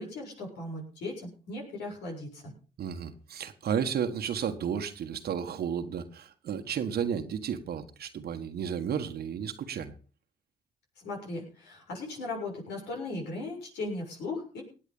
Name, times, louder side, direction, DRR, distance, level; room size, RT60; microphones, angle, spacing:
voice 1, 0.0-2.5 11.0-14.6, left 2 dB, 80° left, 0 dB, 7.1 m, -37 dB
voice 2, 2.8-9.9, right 8 dB, 65° right, 6 dB, 1.5 m, -33 dB
19.0 x 8.4 x 5.5 m, 0.37 s
supercardioid pair, 55°, 17 cm